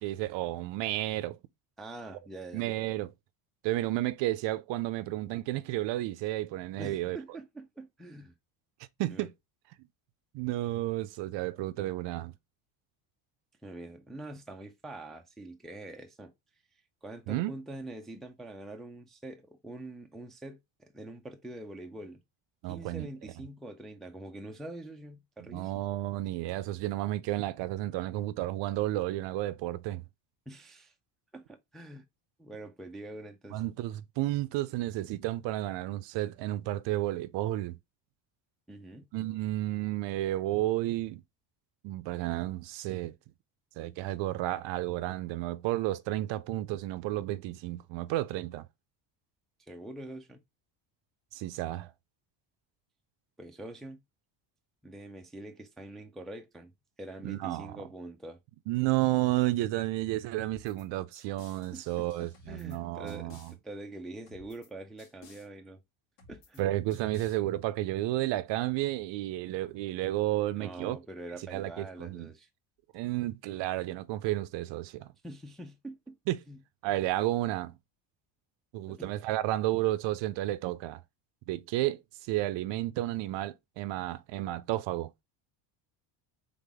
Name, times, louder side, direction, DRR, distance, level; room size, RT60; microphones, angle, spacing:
voice 1, 0.0-1.4 2.5-3.1 3.6-7.2 9.0-9.3 10.3-12.3 17.3-17.5 22.6-23.1 25.5-30.0 33.5-37.8 39.1-41.2 41.8-43.1 43.8-48.7 51.3-51.9 57.2-57.8 58.7-63.5 66.6-71.0 71.5-72.3 72.9-75.1 76.3-76.4 76.8-77.7 78.7-81.0 81.5-85.1, right 16 dB, 60° right, 0.5 m, -32 dB
voice 2, 1.8-2.6 6.8-8.3 9.1-9.3 13.6-16.3 17.0-22.2 22.7-25.8 30.5-30.9 31.3-32.0 32.4-33.6 38.7-39.1 49.7-50.4 53.4-54.0 54.8-56.7 57.0-58.4 61.7-65.8 66.3-66.6 70.5-72.5 75.2-76.2 76.5-76.6 78.9-79.1, right 1 dB, ahead, 0.4 m, -45 dB
sound 1, 60.4-60.9 61.1-62.8 63.1-63.5 64.3-64.7 65.0-65.5 66.2-66.6 66.9-67.4, left 5 dB, 75° left, 2.2 m, -56 dB
3.8 x 3.6 x 3.4 m
cardioid pair, 120°, 49 cm